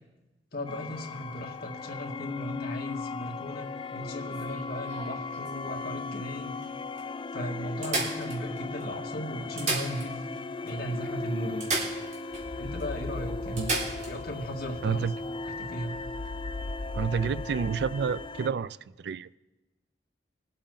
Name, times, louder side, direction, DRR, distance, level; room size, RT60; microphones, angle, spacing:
voice 1, 0.5-6.5 7.3-10.2 10.6-11.6 12.5-13.7 14.0-15.1 15.6-15.9, equal, 60° left, 1.9 m, -36 dB
sound 1, 0.7-18.5, left 3 dB, 30° left, 0.4 m, -37 dB
sound 2, 4.3-5.9 6.6-6.7 7.0-7.1 7.8-8.8 9.4-10.4 10.7-10.8 11.6-12.5 12.8-12.9 13.6-14.1 16.1-16.3, right 3 dB, 45° right, 3.7 m, -33 dB
voice 2, 14.8-15.1 16.9-19.4, right 6 dB, 65° right, 0.3 m, -29 dB
22.5 x 8.7 x 3.9 m
head